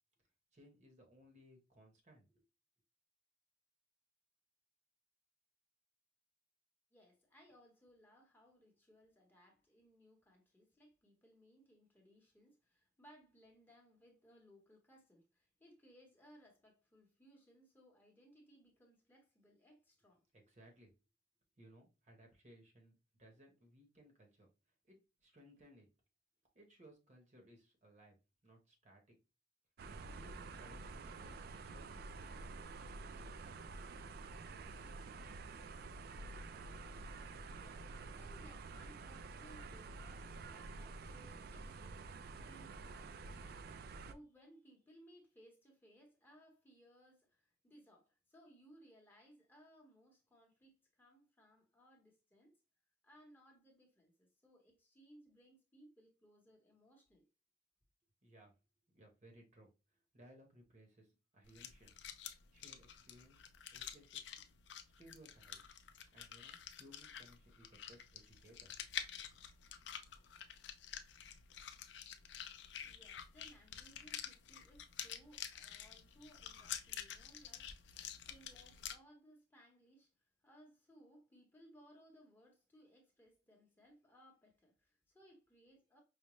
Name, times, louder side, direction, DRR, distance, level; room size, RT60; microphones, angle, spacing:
voice 1, 0.5-2.4 20.3-20.9 21.6-24.5 24.9-25.9 26.5-28.2 28.4-29.2 30.1-32.0 58.2-58.5 58.9-62.1 62.5-63.4 63.7-64.3 65.0-65.7 66.1-68.9, equal, 40° right, 0.9 m, -63 dB
voice 2, 6.9-20.2 37.6-52.5 53.0-57.3 72.8-86.0, equal, 10° left, 0.9 m, -64 dB
sound 1, 29.8-44.1, right 3 dB, 55° right, 0.3 m, -49 dB
sound 2, 61.4-78.9, left 9 dB, 75° left, 0.4 m, -49 dB
4.9 x 2.0 x 3.0 m
head